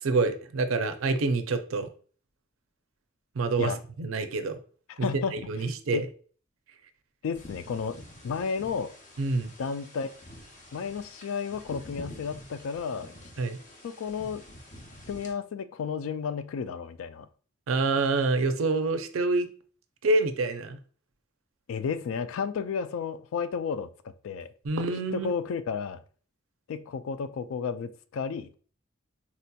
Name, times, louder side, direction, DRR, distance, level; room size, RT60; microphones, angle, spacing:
voice 1, 0.0-1.9 3.4-3.7 4.0-4.6 5.0-6.1 9.2-9.5 13.4-13.6 17.7-19.5 20.0-20.8 24.6-25.3, right 3 dB, 90° right, 9 dB, 0.5 m, -27 dB
voice 2, 4.9-5.4 5.9-6.0 7.2-8.9 9.6-10.1 10.7-13.1 13.8-14.4 15.1-17.3 21.7-23.9 24.2-24.5 25.1-26.0 26.7-28.5, left 6 dB, 85° left, 12 dB, 0.3 m, -32 dB
sound 1, 7.3-15.3, left 1 dB, 40° left, 0.7 m, -47 dB
4.1 x 2.8 x 2.2 m, 0.41 s
head